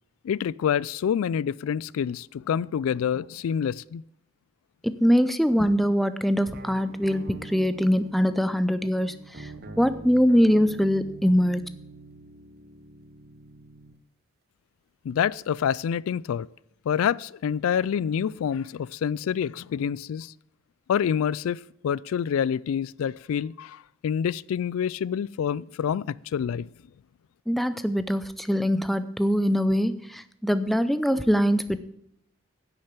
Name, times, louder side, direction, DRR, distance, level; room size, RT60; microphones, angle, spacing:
voice 1, 0.2-4.0 15.0-16.5 16.9-20.3 20.9-26.7, left 8 dB, 75° left, 0.3 m, -27 dB
voice 2, 4.8-9.5 9.8-11.6 27.5-31.8, equal, ahead, 0.4 m, -23 dB
sound 1, 6.5-14.0, right 3 dB, 45° right, 0.9 m, -45 dB
10.5 x 6.4 x 8.3 m
head